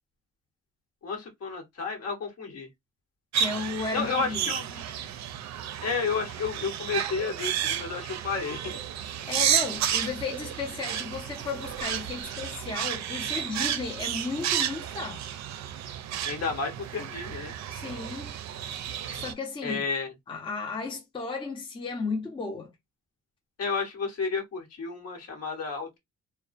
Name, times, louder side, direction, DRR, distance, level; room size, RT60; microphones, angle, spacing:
voice 1, 1.0-2.7 3.9-4.8 5.8-8.8 16.3-17.5 19.6-20.1 23.6-26.0, left 4 dB, 55° left, 1.1 m, -31 dB
voice 2, 3.3-4.5 9.3-15.3 17.7-18.4 19.1-19.8 20.3-22.7, left 4 dB, 15° left, 0.6 m, -34 dB
sound 1, 3.3-19.3, right 10 dB, 65° right, 0.4 m, -32 dB
2.3 x 2.1 x 2.5 m
cardioid pair, 90°, 30 cm